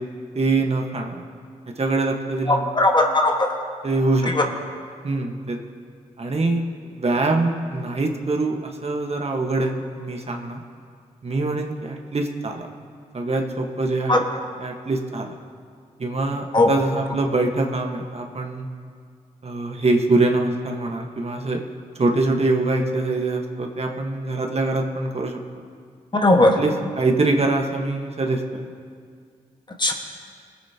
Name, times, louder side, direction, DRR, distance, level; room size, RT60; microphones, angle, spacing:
voice 1, 0.3-1.2 1.8-2.7 3.8-4.3 5.0-5.6 6.2-10.6 11.2-12.7 13.1-14.2 14.6-15.4 16.0-18.7 19.4-21.6 22.0-25.4 26.6-28.7, right 2 dB, 45° right, 2 dB, 1.4 m, -24 dB
voice 2, 2.5-3.5 4.3-4.4 14.1-14.2 16.5-16.7 26.1-26.6 29.8-29.9, left 2 dB, 30° left, 3 dB, 1.5 m, -17 dB
19.5 x 9.2 x 2.9 m, 2.1 s
supercardioid pair, 40°, 15 cm